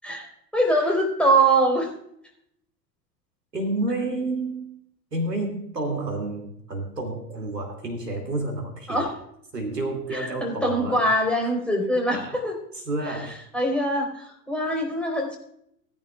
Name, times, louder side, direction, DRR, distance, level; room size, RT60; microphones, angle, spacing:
voice 1, 0.0-1.9 8.9-9.1 10.1-12.6 13.0-13.2 13.5-15.4, right 1 dB, ahead, 0 dB, 3.9 m, -23 dB
voice 2, 3.5-4.7 5.1-9.1 9.5-11.0 11.4-11.5 12.1-12.4 12.7-13.4, right 2 dB, 85° right, 3 dB, 2.5 m, -30 dB
19.0 x 10.5 x 2.4 m, 0.72 s
figure-of-eight pair, 85°, 48 cm